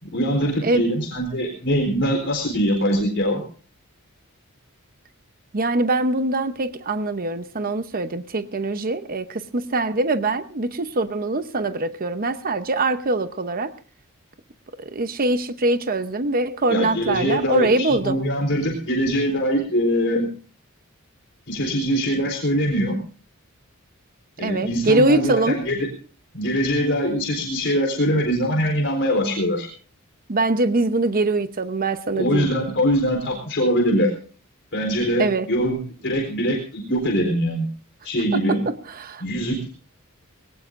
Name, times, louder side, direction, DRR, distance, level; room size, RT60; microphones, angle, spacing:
voice 1, 0.0-3.4 16.7-20.3 21.5-23.0 24.4-25.9 26.3-29.7 32.1-34.1 34.7-37.7 38.0-38.6 39.2-39.7, equal, 55° left, 1 dB, 4.1 m, -22 dB
voice 2, 5.5-13.7 14.8-18.2 24.4-25.6 30.3-32.5 35.2-35.5 38.3-38.6 38.9-39.2, right 2 dB, 40° right, 10 dB, 0.9 m, -23 dB
21.0 x 18.5 x 2.6 m, 0.39 s
head